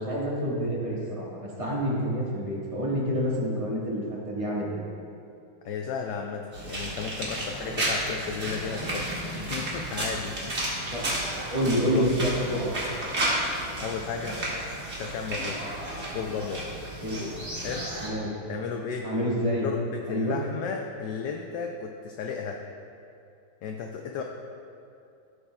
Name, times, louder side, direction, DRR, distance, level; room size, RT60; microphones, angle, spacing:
voice 1, 0.0-4.8 10.9-11.0 11.3-12.7 17.0-17.3 18.0-18.3 19.0-19.6 20.1-20.4, equal, 20° right, -5 dB, 1.1 m, -28 dB
voice 2, 5.6-10.5 11.9-12.4 13.8-14.4 15.0-15.8 16.1-16.6 17.6-17.9 18.5-19.1 19.6-22.6 23.6-24.2, left 6 dB, 75° left, 2 dB, 1.0 m, -34 dB
sound 1, 6.5-18.1, right 1 dB, 35° right, 1.5 m, -32 dB
14.5 x 6.7 x 2.2 m, 2.6 s
omnidirectional pair, 2.2 m